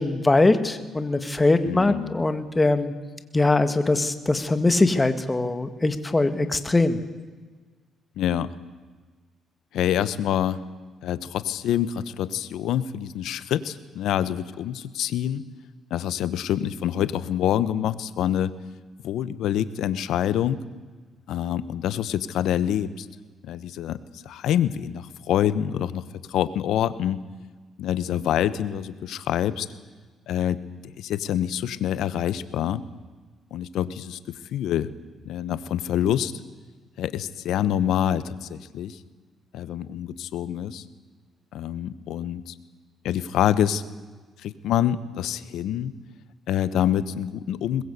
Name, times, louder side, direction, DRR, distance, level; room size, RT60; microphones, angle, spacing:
voice 1, 0.0-2.9 3.3-7.0, left 2 dB, 20° left, 10 dB, 2.0 m, -22 dB
voice 2, 1.6-2.1 8.2-8.5 9.7-10.6 11.0-15.4 15.9-18.5 19.0-20.6 21.3-23.1 23.4-26.0 26.3-27.2 27.8-29.7 30.3-30.6 31.0-32.8 33.5-34.2 34.5-34.9 35.2-36.3 37.0-39.0 39.5-40.8 41.5-42.5 43.0-43.8 44.4-45.9 46.5-47.8, left 10 dB, 80° left, 15 dB, 1.1 m, -26 dB
22.0 x 21.0 x 8.2 m, 1.4 s
cardioid pair, 90°, 0 cm